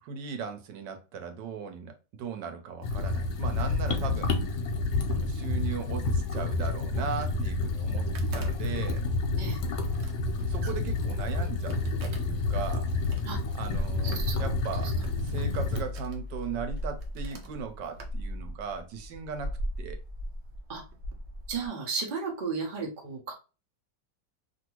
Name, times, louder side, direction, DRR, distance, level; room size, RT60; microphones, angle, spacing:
voice 1, 0.0-4.4 5.1-9.0 10.5-12.9 13.5-19.5 19.8-20.0, right 6 dB, 85° right, 1.3 m, -38 dB
sound 1, 2.8-15.8, left 3 dB, 65° left, 1.1 m, -29 dB
sound 2, 7.1-21.7, equal, 70° right, 0.6 m, -40 dB
voice 2, 14.1-14.4 14.8-15.3 20.7-20.8 21.5-23.3, right 5 dB, 40° right, 0.8 m, -35 dB
2.9 x 2.6 x 2.9 m
omnidirectional pair, 1.9 m